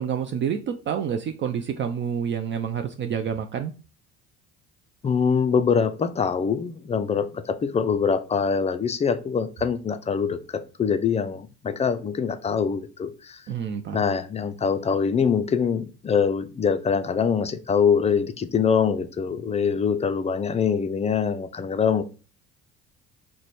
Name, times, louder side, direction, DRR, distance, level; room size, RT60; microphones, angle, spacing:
voice 1, 0.0-3.7 13.5-14.0, right 8 dB, 40° right, 0.4 m, -28 dB
voice 2, 5.0-13.4 13.9-22.0, left 6 dB, 20° left, 0.4 m, -24 dB
3.0 x 2.2 x 4.1 m
supercardioid pair, 70°, 30 cm